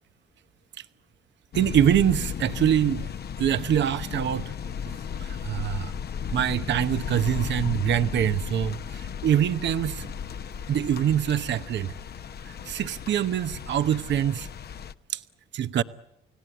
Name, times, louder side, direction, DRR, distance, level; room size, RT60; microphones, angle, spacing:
sound 1, 1.5-14.9, left 7 dB, 55° left, 1.0 m, -35 dB
voice 1, 1.5-3.1 3.4-5.9 6.3-10.1 10.7-11.9 12.4-14.5 15.1-15.2 15.5-15.8, right 10 dB, 65° right, 1.0 m, -25 dB
30.0 x 17.0 x 9.2 m
cardioid pair, 90°, 20 cm